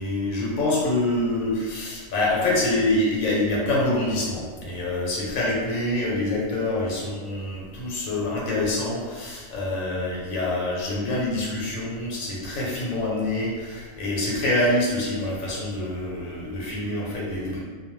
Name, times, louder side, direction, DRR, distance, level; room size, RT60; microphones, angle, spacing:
voice 1, 0.0-17.6, left 1 dB, 90° left, -4 dB, 1.1 m, -26 dB
2.5 x 2.1 x 3.0 m, 1.5 s
omnidirectional pair, 1.4 m